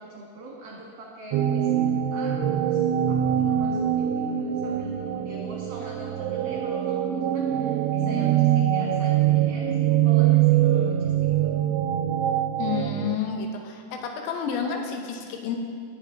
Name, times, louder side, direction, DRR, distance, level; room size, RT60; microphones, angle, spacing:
voice 1, 0.0-11.6, right 2 dB, 65° right, -3 dB, 2.2 m, -43 dB
sound 1, 1.3-13.2, right 11 dB, 85° right, 2.6 m, -23 dB
voice 2, 12.6-15.6, left 6 dB, 80° left, 3 dB, 3.1 m, -30 dB
18.5 x 6.9 x 3.6 m, 2.1 s
omnidirectional pair, 5.1 m